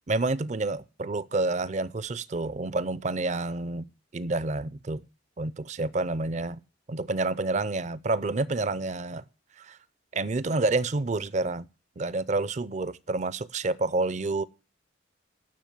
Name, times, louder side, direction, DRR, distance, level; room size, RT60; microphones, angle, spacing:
voice 1, 0.1-5.0 5.4-6.6 6.9-9.2 9.6-9.8 10.1-11.7 12.0-14.4, right 2 dB, 35° right, 0.5 m, -29 dB
10.5 x 6.3 x 8.7 m
head